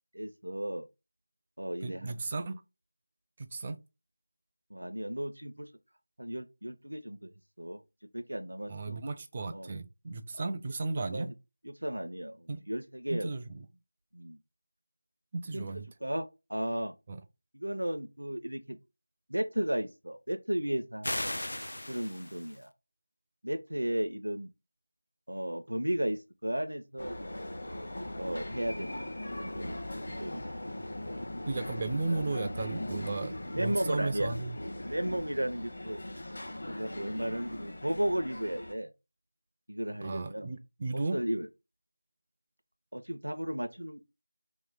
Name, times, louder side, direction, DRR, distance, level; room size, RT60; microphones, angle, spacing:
voice 1, 0.1-0.9 1.6-2.2 4.7-5.7 6.2-7.3 7.6-7.8 8.1-9.0 9.5-9.7 10.3-10.4 11.1-11.3 11.8-13.3 14.1-14.4 15.5-15.7 16.0-16.9 17.5-18.8 19.3-21.4 21.9-22.7 23.4-24.5 25.3-27.3 28.2-29.1 29.4-29.8 30.1-30.6 33.5-34.3 34.8-36.3 36.7-38.9 39.7-40.5 40.9-41.5 42.9-44.0, right 1 dB, 80° right, 0.5 m, -34 dB
voice 2, 1.8-2.6 3.4-3.8 8.7-11.3 12.5-12.6 13.1-13.6 15.3-15.9 17.1-17.2 31.5-34.6 40.0-41.2, right 3 dB, 20° right, 0.4 m, -35 dB
sound 1, 21.0-22.6, left 1 dB, 65° left, 0.4 m, -36 dB
sound 2, 27.0-38.7, left 1 dB, 50° left, 0.9 m, -40 dB
3.1 x 3.0 x 3.7 m
figure-of-eight pair, 170°, 0 cm